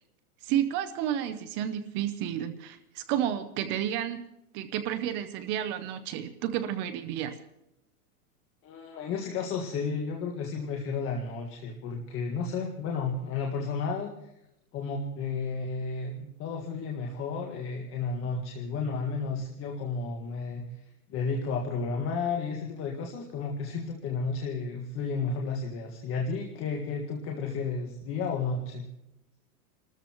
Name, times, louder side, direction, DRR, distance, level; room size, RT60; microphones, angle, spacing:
voice 1, 0.4-4.2 4.5-7.4, right 10 dB, 25° right, 9 dB, 0.6 m, -31 dB
voice 2, 8.6-14.1 14.7-20.6 21.1-28.9, left 4 dB, 30° left, 0 dB, 1.7 m, -32 dB
28.5 x 13.5 x 3.0 m, 0.86 s
supercardioid pair, 150°, 45 cm